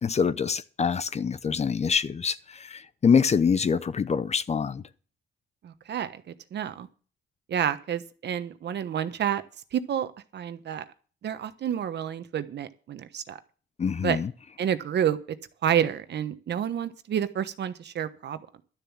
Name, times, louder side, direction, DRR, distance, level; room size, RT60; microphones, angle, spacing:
voice 1, 0.0-4.8 13.8-14.3, left 6 dB, 35° left, 0.6 m, -25 dB
voice 2, 5.6-6.9 7.5-9.4 9.7-10.8 11.2-13.4 14.0-14.2 14.6-15.2 15.6-18.6, right 9 dB, 60° right, 1.1 m, -29 dB
12.0 x 7.1 x 7.3 m
cardioid pair, 90°, 20 cm